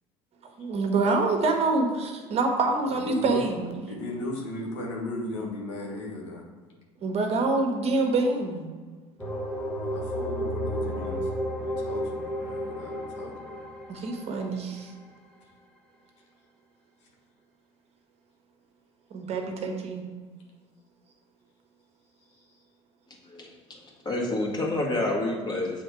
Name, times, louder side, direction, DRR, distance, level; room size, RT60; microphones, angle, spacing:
voice 1, 0.6-3.9 7.0-8.7 13.9-14.9 19.1-20.1, right 3 dB, 45° right, 3 dB, 1.1 m, -26 dB
voice 2, 2.9-3.4 3.9-6.4 9.9-13.6 19.4-19.5 22.3-22.6, left 2 dB, 85° left, -1 dB, 1.3 m, -36 dB
sound 1, 9.2-14.9, equal, 5° left, 1.2 m, -32 dB
voice 3, 24.1-25.8, left 2 dB, 30° left, -2 dB, 1.8 m, -28 dB
6.9 x 3.8 x 4.8 m, 1.4 s
hypercardioid pair, 80°, 15 cm